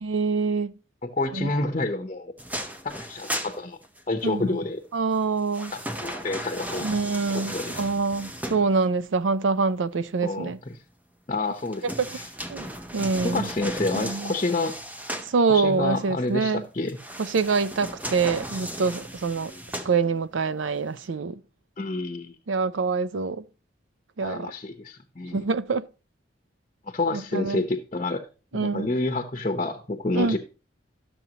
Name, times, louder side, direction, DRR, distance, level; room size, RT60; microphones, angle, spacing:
voice 1, 0.0-0.7 1.3-1.5 4.2-4.4 4.9-5.7 6.8-10.6 12.0-12.1 12.5-12.7 12.9-13.5 13.9-14.4 15.3-16.6 17.2-19.5 19.8-21.4 22.5-23.4 24.2-24.5 25.3-25.8 27.1-27.6 28.5-28.9 30.1-30.4, right 4 dB, 90° right, 0.5 m, -25 dB
voice 2, 1.0-2.3 2.8-3.8 4.1-4.8 5.7-6.9 7.3-7.9 10.2-10.7 11.3-12.3 13.2-14.8 15.5-17.0 19.5-19.7 21.8-22.4 24.2-25.4 26.9-28.2 28.5-30.4, left 2 dB, 35° left, 0.8 m, -29 dB
sound 1, 2.4-4.3 5.1-9.1 11.5-15.4 16.9-20.4 20.9-21.0, right 1 dB, 10° right, 0.7 m, -36 dB
12.0 x 7.0 x 2.9 m
head